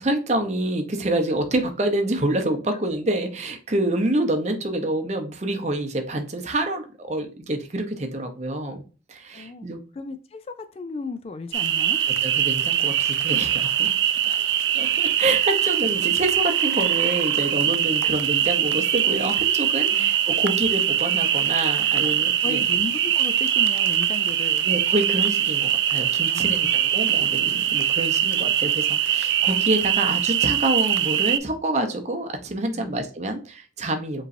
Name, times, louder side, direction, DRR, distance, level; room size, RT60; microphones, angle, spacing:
voice 1, 0.0-8.8 9.1-9.8 12.2-13.9 14.7-22.6 24.6-34.2, right 1 dB, 40° right, 5 dB, 0.7 m, -27 dB
voice 2, 9.3-9.7 9.9-12.0 14.2-14.7 15.6-15.8 20.0-20.1 22.0-24.7 26.3-26.7 32.7-33.0, left 3 dB, 35° left, 10 dB, 0.3 m, -35 dB
sound 1, 11.5-31.4, right 10 dB, 75° right, 0.4 m, -22 dB
5.1 x 3.1 x 2.6 m, 0.35 s
head